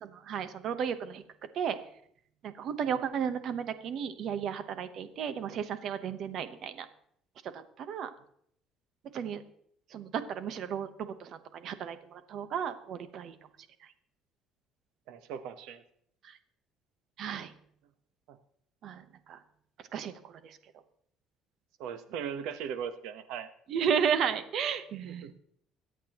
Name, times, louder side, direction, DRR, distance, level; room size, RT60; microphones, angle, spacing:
voice 1, 0.0-1.2 1.5-1.8 2.4-6.9 7.4-8.1 9.1-9.4 9.9-13.4 13.8-13.9 16.2-16.4 17.2-17.5 18.8-19.4 19.9-20.6 23.7-25.3, right 7 dB, 55° right, 11 dB, 1.0 m, -34 dB
voice 2, 15.1-15.8 18.3-18.4 21.8-23.5 25.0-25.3, right 8 dB, 80° right, 10 dB, 1.0 m, -39 dB
24.0 x 8.4 x 3.0 m, 0.68 s
cardioid pair, 120°, 0 cm